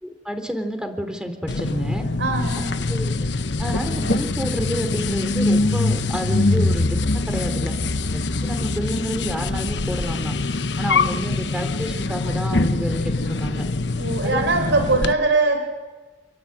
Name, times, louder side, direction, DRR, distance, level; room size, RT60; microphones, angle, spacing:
voice 1, 0.0-2.1 2.9-3.1 3.6-7.0 7.3-7.8 8.1-10.3 10.8-13.7 14.2-14.4, equal, 5° right, 6 dB, 3.5 m, -29 dB
sound 1, 1.5-15.1, left 3 dB, 75° left, 1.1 m, -23 dB
voice 2, 2.2-2.8 14.0-15.8, right 3 dB, 85° right, 7 dB, 4.3 m, -21 dB
29.0 x 23.0 x 9.0 m, 1.3 s
head